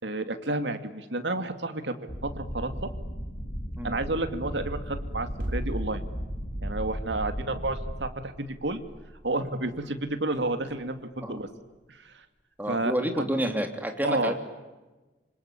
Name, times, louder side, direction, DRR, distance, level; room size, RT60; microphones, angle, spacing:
voice 1, 0.0-2.7 3.8-6.0 6.6-8.8 9.2-11.5 11.9-12.1 12.7-12.9 14.0-14.3, right 2 dB, 75° right, 8 dB, 2.5 m, -31 dB
sound 1, 2.1-8.1, equal, 50° left, 3.9 m, -36 dB
sound 2, 5.4-11.6, equal, 50° right, 3.1 m, -39 dB
voice 2, 12.6-14.3, equal, 10° right, 4 dB, 3.1 m, -29 dB
26.5 x 26.0 x 8.7 m, 1.2 s
head